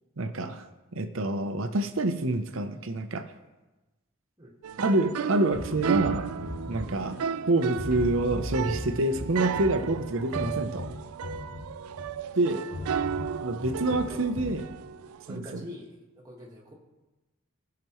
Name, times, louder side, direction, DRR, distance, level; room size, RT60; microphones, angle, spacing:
voice 1, 0.2-0.6 0.9-3.3 4.8-6.3 6.7-7.2 7.5-10.9 12.4-12.6 13.4-14.6 15.3-15.6, right 2 dB, 65° right, 8 dB, 0.7 m, -27 dB
sound 1, 4.6-15.4, right 7 dB, 85° right, 0.3 m, -34 dB
sound 2, 5.5-7.4 7.8-12.2 12.7-14.7, left 2 dB, 75° left, 3.1 m, -38 dB
voice 2, 12.2-12.8 13.7-14.5 15.3-16.7, equal, 15° right, -4 dB, 1.6 m, -45 dB
16.5 x 6.0 x 3.1 m, 1.1 s
head